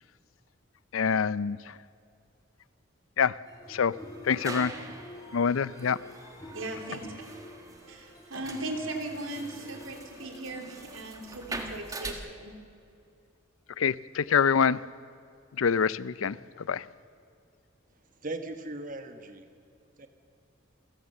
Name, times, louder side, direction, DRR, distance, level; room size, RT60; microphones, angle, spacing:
voice 1, 0.9-1.7 3.2-3.4 3.7-3.9 4.2-4.7 5.3-6.0 13.8-14.8 15.6-16.9, left 6 dB, 85° left, 0.5 m, -26 dB
sound 1, 3.5-10.8, equal, 20° left, 3.5 m, -47 dB
sound 2, 4.0-12.1, right 2 dB, 15° right, 1.5 m, -43 dB
voice 2, 6.5-7.1 7.9-12.5, right 2 dB, 80° right, 3.0 m, -38 dB
voice 3, 18.2-19.5 20.0-20.1, right 2 dB, 40° right, 1.3 m, -38 dB
28.0 x 15.0 x 6.8 m
head